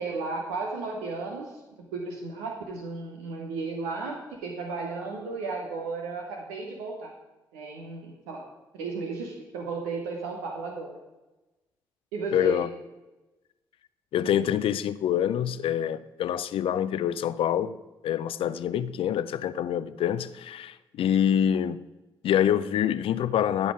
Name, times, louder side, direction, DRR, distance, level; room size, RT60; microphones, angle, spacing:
voice 1, 0.0-1.6 1.9-7.1 7.5-8.5 8.7-11.0 12.1-12.7, right 4 dB, 85° right, 0.9 m, -34 dB
voice 2, 12.3-12.7 14.1-17.7 18.0-21.8 22.2-23.7, left 9 dB, 65° left, 0.5 m, -26 dB
12.5 x 5.5 x 4.9 m
hypercardioid pair, 40°, 10 cm